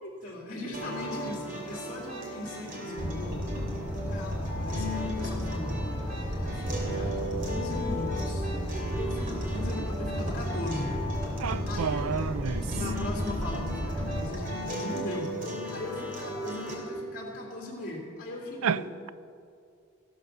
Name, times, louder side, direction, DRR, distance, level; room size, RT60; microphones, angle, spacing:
voice 1, 0.0-3.4 3.9-5.9 6.4-7.1 7.5-8.5 9.0-11.0 11.7-12.2 12.6-15.3 15.7-19.1, left 1 dB, 40° left, 2.8 m, -39 dB
sound 1, 0.7-16.7, equal, 40° right, 3.1 m, -37 dB
sound 2, 3.0-14.3, equal, 10° right, 2.4 m, -33 dB
voice 2, 11.4-12.6 18.6-18.8, right 6 dB, 80° right, 0.4 m, -29 dB
15.0 x 12.0 x 6.7 m
head